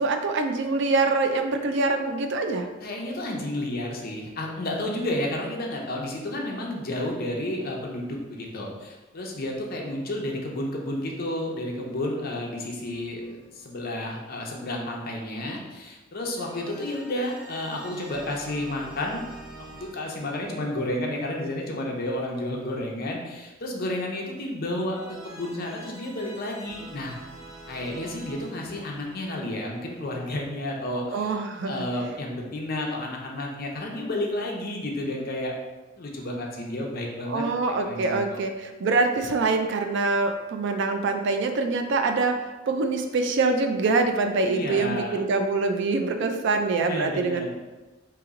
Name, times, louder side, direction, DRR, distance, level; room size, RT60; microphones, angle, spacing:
voice 1, 0.0-2.7 31.1-31.9 37.3-42.4 42.7-47.5, right 3 dB, 65° right, 6 dB, 0.4 m, -24 dB
voice 2, 2.8-19.2 19.7-27.2 27.7-31.4 31.6-35.5 36.0-37.4 37.8-38.4 44.5-45.2 46.8-47.5, left 1 dB, 50° left, -1 dB, 0.7 m, -31 dB
sound 1, 12.8-13.8 16.4-22.4 24.9-30.6, right 2 dB, 5° right, 1.5 m, -47 dB
2.9 x 2.9 x 3.6 m, 1.2 s
head